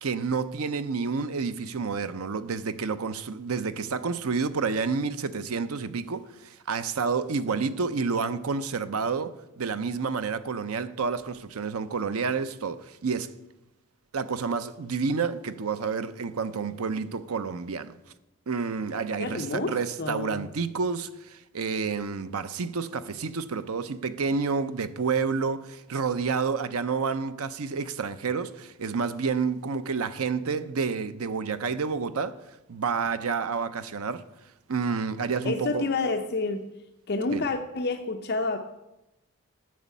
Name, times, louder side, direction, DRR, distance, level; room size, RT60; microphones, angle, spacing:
voice 1, 0.0-13.3 14.1-18.0 18.5-32.3 32.7-34.2 34.7-35.9 37.3-37.4, right 5 dB, 80° right, 0.6 m, -29 dB
voice 2, 19.2-20.4 35.4-36.7 37.1-38.6, left 3 dB, 50° left, 0.7 m, -29 dB
9.3 x 6.3 x 8.3 m
head